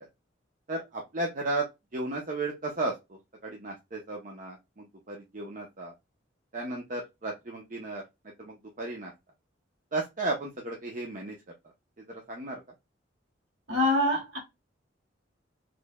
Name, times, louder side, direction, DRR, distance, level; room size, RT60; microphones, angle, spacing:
voice 1, 0.7-1.7 1.9-5.9 6.5-8.0 8.4-9.1 9.9-11.4 12.1-12.6, right 2 dB, 45° right, 0.8 m, -34 dB
voice 2, 13.7-14.4, left 1 dB, 65° right, 2.0 m, -25 dB
4.3 x 3.3 x 2.2 m
head